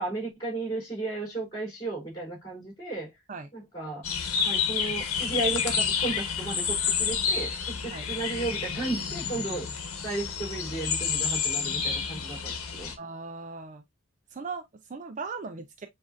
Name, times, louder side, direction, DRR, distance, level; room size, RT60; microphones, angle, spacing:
voice 1, 0.0-3.1 3.5-4.1 4.4-9.7 10.0-12.9, right 2 dB, 20° left, 3.2 m, -34 dB
sound 1, 4.0-12.9, left 6 dB, 80° left, 1.0 m, -29 dB
voice 2, 13.0-13.8 14.3-15.9, right 4 dB, 35° right, 0.4 m, -38 dB
7.2 x 2.5 x 2.4 m
head